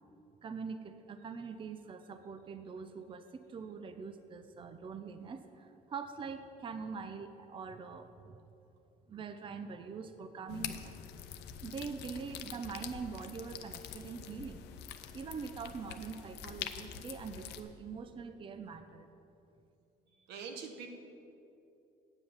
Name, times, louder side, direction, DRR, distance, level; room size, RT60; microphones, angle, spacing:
voice 1, 0.4-8.4 9.1-11.0 11.6-14.6 15.1-19.1, right 5 dB, 30° right, 9 dB, 0.6 m, -43 dB
sound 1, 10.5-17.6, left 9 dB, 80° left, 0.7 m, -45 dB
voice 2, 20.3-20.9, right 6 dB, 85° right, 4 dB, 1.2 m, -43 dB
9.0 x 7.6 x 7.0 m, 2.9 s
cardioid pair, 110°, 17 cm